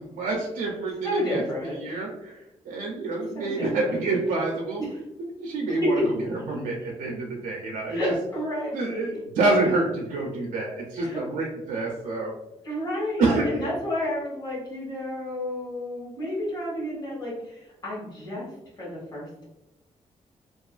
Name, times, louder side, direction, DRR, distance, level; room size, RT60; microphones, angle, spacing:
voice 1, 0.2-1.4 1.8-2.3 2.7-4.8 5.4-6.0 6.5-8.0 8.7-12.3 13.2-13.6, right 2 dB, 85° right, -2 dB, 0.4 m, -27 dB
voice 2, 1.0-1.8 3.3-4.0 4.8-4.9 5.8-6.1 7.9-9.2 9.6-9.7 10.9-11.2 12.6-18.5 18.8-19.5, equal, 30° left, -7 dB, 1.0 m, -30 dB
2.4 x 2.3 x 2.3 m, 0.90 s
wide cardioid pair, 145°, 13 cm